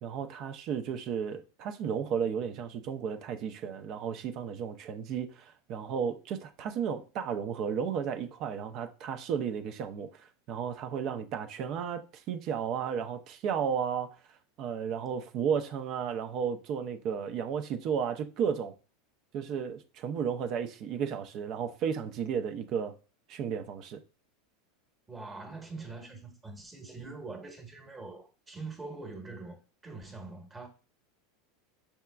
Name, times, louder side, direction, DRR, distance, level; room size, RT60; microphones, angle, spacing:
voice 1, 0.0-14.1 14.6-18.7 19.3-23.0 23.3-24.0, right 7 dB, 45° right, 0.5 m, -33 dB
voice 2, 25.1-30.7, right 3 dB, 15° right, 1.1 m, -43 dB
5.7 x 3.5 x 2.3 m
supercardioid pair, 140°, 0 cm